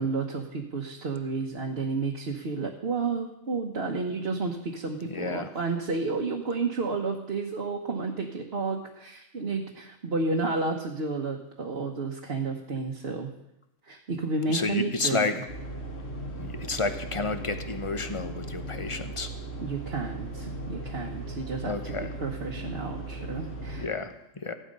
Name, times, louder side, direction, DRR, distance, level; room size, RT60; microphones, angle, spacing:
voice 1, 0.0-13.3 13.9-15.4 19.6-23.9, right 3 dB, 50° right, 0 dB, 1.4 m, -31 dB
voice 2, 5.0-5.5 14.5-15.3 16.4-19.3 21.7-22.1 23.8-24.5, left 3 dB, 25° left, 9 dB, 0.9 m, -31 dB
sound 1, 15.5-23.9, right 2 dB, 50° left, 2.2 m, -37 dB
15.0 x 11.5 x 5.4 m, 0.84 s
omnidirectional pair, 1.4 m